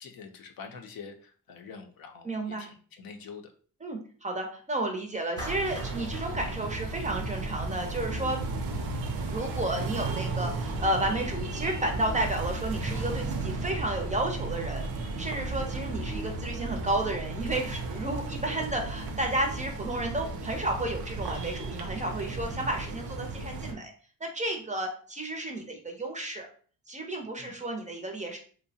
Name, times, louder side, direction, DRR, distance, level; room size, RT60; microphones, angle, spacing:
voice 1, 0.0-3.5 22.5-22.6 27.4-27.6, left 5 dB, 70° left, 5 dB, 0.5 m, -46 dB
voice 2, 2.2-2.7 3.8-8.4 9.2-14.8 15.2-23.9 24.2-26.5 26.9-28.4, right 1 dB, 20° right, 3 dB, 0.4 m, -32 dB
Clapping, 5.4-7.7, equal, 10° left, 0.7 m, -44 dB
sound 1, 5.4-23.7, right 3 dB, 80° right, 0.5 m, -34 dB
2.7 x 2.0 x 2.6 m, 0.43 s
cardioid pair, 110°, 37 cm